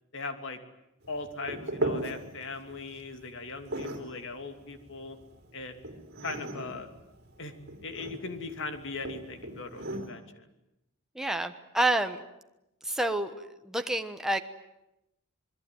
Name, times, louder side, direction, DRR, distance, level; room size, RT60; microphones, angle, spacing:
voice 1, 0.1-0.6 1.1-5.2 5.5-5.8 6.2-6.9 7.4-7.5 7.8-10.5, left 3 dB, 65° left, 7 dB, 2.8 m, -39 dB
sound 1, 1.0-10.1, right 1 dB, 50° right, 4.0 m, -38 dB
voice 2, 11.1-12.2 12.8-14.4, right 1 dB, ahead, 6 dB, 1.3 m, -29 dB
27.0 x 21.0 x 9.4 m, 0.90 s
head